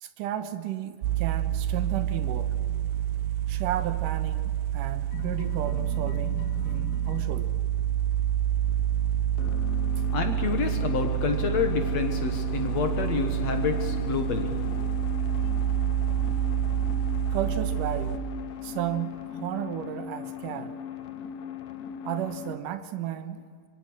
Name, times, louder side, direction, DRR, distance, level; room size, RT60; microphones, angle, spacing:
voice 1, 0.0-2.6 3.5-7.5 10.0-10.1 17.3-18.3 18.6-20.8 22.0-23.7, right 11 dB, 65° right, 11 dB, 2.4 m, -34 dB
fan from back side, 1.0-18.2, right 11 dB, 90° right, 2.8 m, -28 dB
sound 1, 5.1-7.5 9.4-22.6, left 10 dB, 75° left, 2.9 m, -37 dB
voice 2, 10.1-14.6, left 7 dB, 60° left, 7 dB, 2.0 m, -28 dB
24.5 x 24.5 x 6.3 m, 2.1 s
omnidirectional pair, 4.5 m